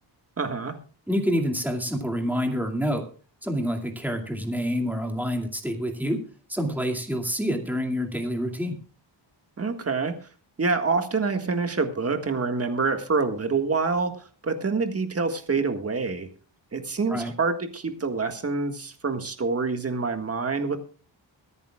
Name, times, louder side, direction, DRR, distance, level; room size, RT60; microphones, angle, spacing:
voice 1, 0.4-0.8 9.6-10.1 10.6-16.3 16.7-20.8, right 4 dB, 30° right, 7 dB, 1.7 m, -26 dB
voice 2, 1.1-3.1 3.4-6.2 6.5-8.8 17.1-17.3, equal, 5° right, 3 dB, 2.4 m, -27 dB
23.0 x 10.5 x 2.4 m, 0.39 s
wide cardioid pair, 150°, 45 cm